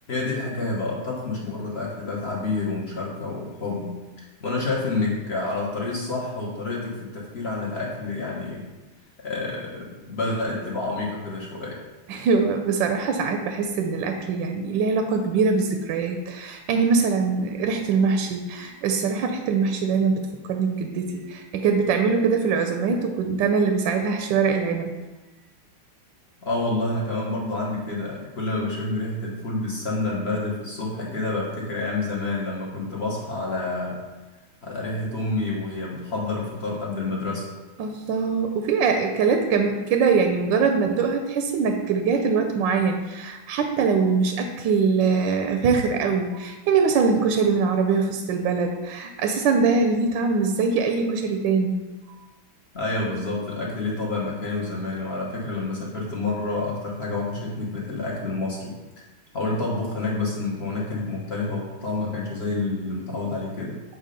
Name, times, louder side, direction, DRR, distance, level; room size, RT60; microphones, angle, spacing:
voice 1, 0.1-8.6 9.2-11.8 26.4-34.0 34.6-37.5 52.7-58.8 59.3-63.8, left 2 dB, 45° left, -4 dB, 0.9 m, -28 dB
voice 2, 12.1-24.9 37.8-51.8, right 5 dB, 75° right, 5 dB, 1.1 m, -23 dB
7.4 x 2.7 x 5.0 m, 1.1 s
omnidirectional pair, 2.3 m